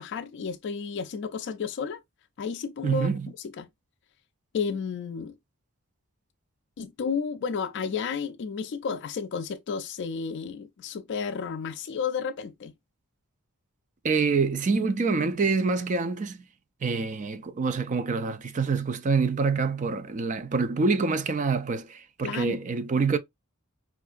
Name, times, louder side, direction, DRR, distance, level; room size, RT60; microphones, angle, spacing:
voice 1, 0.0-2.0 2.4-3.1 3.6-3.7 4.5-5.3 6.8-12.7 22.2-22.6, left 6 dB, 55° left, 0.3 m, -32 dB
voice 2, 2.8-3.3 14.0-16.4 16.8-23.2, right 4 dB, 35° right, 0.4 m, -26 dB
4.5 x 2.4 x 2.4 m
head